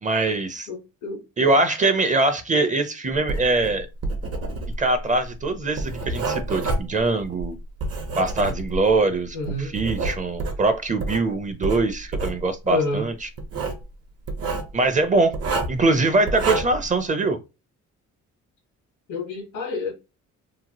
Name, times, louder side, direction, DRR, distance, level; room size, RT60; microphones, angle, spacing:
voice 1, 0.0-0.7 1.4-3.9 4.8-7.6 8.2-13.3 14.7-15.4 15.7-17.4, right 2 dB, 25° right, 0.5 m, -22 dB
voice 2, 0.7-1.2 9.3-9.7 12.7-13.1 19.1-19.9, left 3 dB, 90° left, 1.2 m, -28 dB
Writing, 3.2-9.0 9.5-11.2 11.6-12.4 13.4-13.8 14.3-14.7 15.3-15.8 16.3-16.9, right 3 dB, 55° right, 0.8 m, -28 dB
2.8 x 2.1 x 2.9 m
cardioid pair, 90°, 30 cm